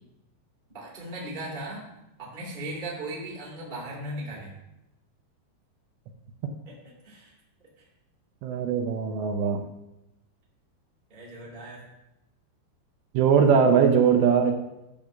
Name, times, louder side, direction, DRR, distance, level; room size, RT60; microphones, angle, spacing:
voice 1, 0.7-1.8 2.2-4.6 6.6-6.7 7.0-7.3 11.1-11.8, right 1 dB, 20° right, -4 dB, 1.4 m, -37 dB
voice 2, 8.4-9.6 13.1-14.5, right 6 dB, 80° right, 4 dB, 2.9 m, -20 dB
10.5 x 3.7 x 6.4 m, 0.91 s
omnidirectional pair, 5.2 m